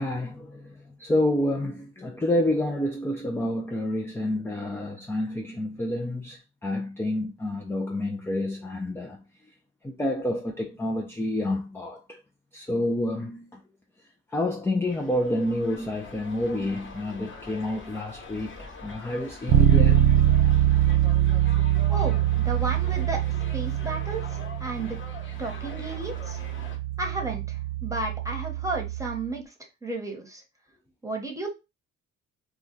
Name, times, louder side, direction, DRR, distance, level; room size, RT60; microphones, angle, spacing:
voice 1, 0.0-9.2 9.8-12.2 12.5-13.6 14.3-20.0, left 1 dB, 10° left, 0.4 m, -29 dB
sound 1, 14.8-26.8, left 4 dB, 40° left, 1.0 m, -44 dB
Bass guitar, 19.5-29.3, right 11 dB, 55° right, 0.5 m, -24 dB
voice 2, 21.9-23.2 23.5-25.0 25.4-26.4 27.0-29.4 29.8-30.4 31.0-31.5, right 2 dB, 10° right, 1.0 m, -33 dB
2.3 x 2.3 x 3.8 m
cardioid pair, 90°, 30 cm